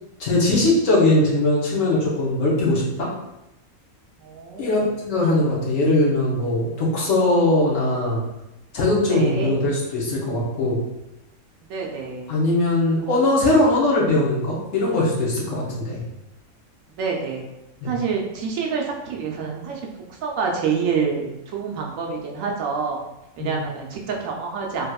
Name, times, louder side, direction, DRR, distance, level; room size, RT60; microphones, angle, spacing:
voice 1, 0.2-3.1 4.6-8.2 8.7-10.8 12.3-16.0 17.8-17.9 23.4-23.6, left 2 dB, 65° left, -5 dB, 1.2 m, -20 dB
voice 2, 4.2-4.9 9.1-9.6 11.7-12.4 13.0-13.2 16.9-17.4 17.8-19.8 20.2-23.0 23.4-24.9, right 5 dB, 70° right, 0 dB, 0.9 m, -27 dB
3.5 x 2.8 x 2.2 m, 0.92 s
omnidirectional pair, 1.5 m